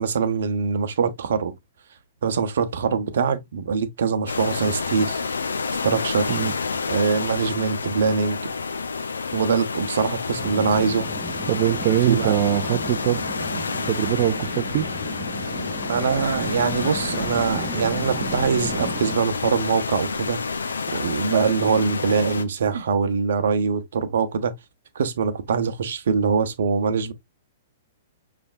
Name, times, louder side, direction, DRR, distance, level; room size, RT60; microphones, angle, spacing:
voice 1, 0.0-1.5 2.2-5.2 5.8-6.4 6.9-8.4 9.3-11.1 12.1-12.4 15.9-20.4 20.9-24.5 24.9-27.1, right 5 dB, 65° right, 0.9 m, -23 dB
sound 1, 4.3-22.4, left 4 dB, 80° left, 0.6 m, -29 dB
sound 2, 10.3-19.2, right 3 dB, 20° right, 0.8 m, -35 dB
voice 2, 11.5-13.2 13.5-14.9, right 13 dB, 45° right, 0.5 m, -23 dB
6.2 x 3.4 x 2.4 m
figure-of-eight pair, 115°, 0 cm